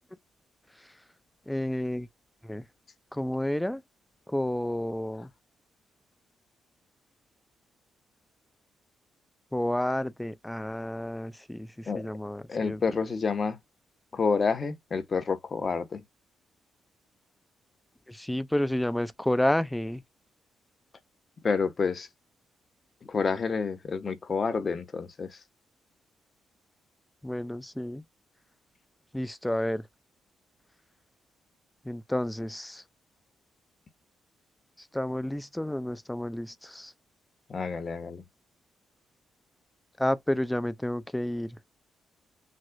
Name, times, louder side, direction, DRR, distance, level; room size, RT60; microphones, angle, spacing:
voice 1, 1.5-2.1 2.4-2.7 3.1-3.8 4.3-5.3 9.5-12.8 18.1-20.0 27.2-28.0 29.1-29.9 31.8-32.8 34.8-36.9 40.0-41.6, left 1 dB, 10° left, 0.8 m, -30 dB
voice 2, 12.5-13.6 14.1-16.0 21.4-22.1 23.1-25.4 37.5-38.2, left 5 dB, 45° left, 1.3 m, -29 dB
6.5 x 2.4 x 2.3 m
supercardioid pair, 60°, 0 cm